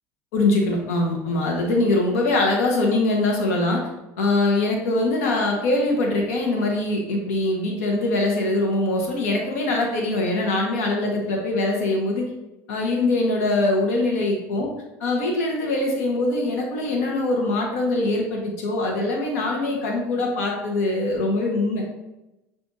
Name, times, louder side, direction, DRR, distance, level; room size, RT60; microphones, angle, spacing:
voice 1, 0.3-3.9 4.2-12.3 12.7-14.7 15.0-21.8, left 2 dB, 90° left, 0 dB, 0.9 m, -23 dB
5.8 x 2.5 x 2.6 m, 0.98 s
supercardioid pair, 95°, 8 cm